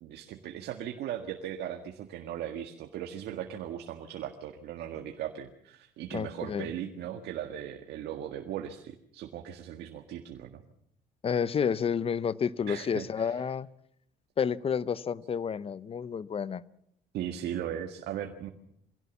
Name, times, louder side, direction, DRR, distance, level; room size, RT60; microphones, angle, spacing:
voice 1, 0.0-10.6 12.7-13.4 17.1-18.5, right 10 dB, 75° right, 5 dB, 1.7 m, -38 dB
voice 2, 6.1-6.7 11.2-13.7 14.4-16.6, left 7 dB, 35° left, 18 dB, 0.8 m, -30 dB
23.5 x 17.0 x 7.2 m, 0.72 s
cardioid pair, 110°, 17 cm